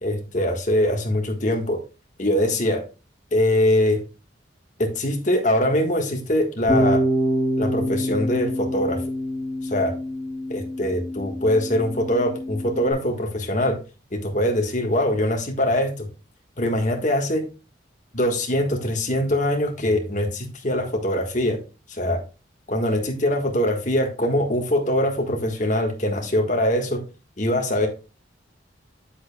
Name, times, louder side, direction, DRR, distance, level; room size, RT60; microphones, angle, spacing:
voice 1, 0.0-1.8 2.2-2.8 3.3-4.0 4.8-7.0 7.6-9.0 9.6-9.9 10.5-13.8 14.1-16.1 16.6-17.4 18.1-21.6 21.9-22.2 22.7-27.0 27.4-27.9, left 1 dB, 40° left, 3 dB, 1.5 m, -23 dB
Bass guitar, 6.7-12.9, equal, 15° right, 4.7 m, -26 dB
8.7 x 7.8 x 2.3 m, 0.30 s
head